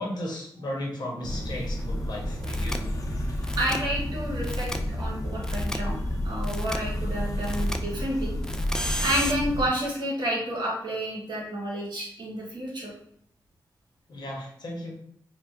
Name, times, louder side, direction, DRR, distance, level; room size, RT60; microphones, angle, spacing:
voice 1, 0.0-2.9 14.1-15.0, left 1 dB, 65° left, -2 dB, 1.0 m, -35 dB
sound 1, 1.2-9.7, left 1 dB, 50° left, 0.7 m, -30 dB
sound 2, 2.4-2.8 3.4-3.8 4.4-4.8 5.4-5.8 6.4-6.8 7.4-7.8 8.4-9.3, left 1 dB, 10° left, 0.3 m, -32 dB
voice 2, 3.6-6.0 6.2-8.6 9.0-12.9, right 1 dB, 70° right, -4 dB, 1.4 m, -30 dB
4.5 x 2.3 x 2.6 m, 0.69 s
cardioid pair, 75°, 8 cm